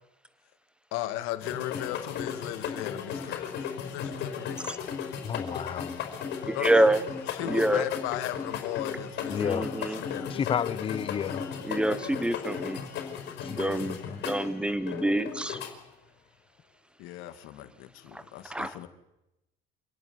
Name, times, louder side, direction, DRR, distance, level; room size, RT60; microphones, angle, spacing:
voice 1, 0.9-4.6 6.5-6.7 7.3-10.8 13.6-13.9 17.0-18.9, left 13 dB, 80° left, 10 dB, 2.4 m, -37 dB
sound 1, 1.4-15.7, left 7 dB, 55° left, 5.1 m, -36 dB
voice 2, 5.2-6.0 9.3-9.7 10.3-11.4 13.4-14.2, left 8 dB, 25° left, 17 dB, 0.9 m, -32 dB
voice 3, 6.4-7.0 7.4-7.9 9.4-10.0 11.6-12.8 13.4-15.6 18.1-18.2 18.5-18.8, right 1 dB, 5° right, 14 dB, 1.2 m, -27 dB
27.0 x 18.0 x 9.7 m, 0.94 s
cardioid pair, 175°, 20 cm